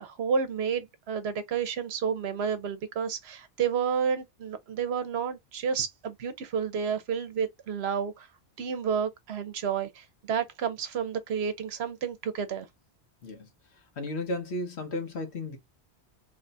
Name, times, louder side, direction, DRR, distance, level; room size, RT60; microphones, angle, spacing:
voice 1, 0.0-8.3 8.6-12.7, right 7 dB, 70° right, 0.9 m, -30 dB
voice 2, 14.0-15.6, left 2 dB, 75° left, 1.3 m, -34 dB
3.1 x 2.2 x 3.9 m
omnidirectional pair, 1.1 m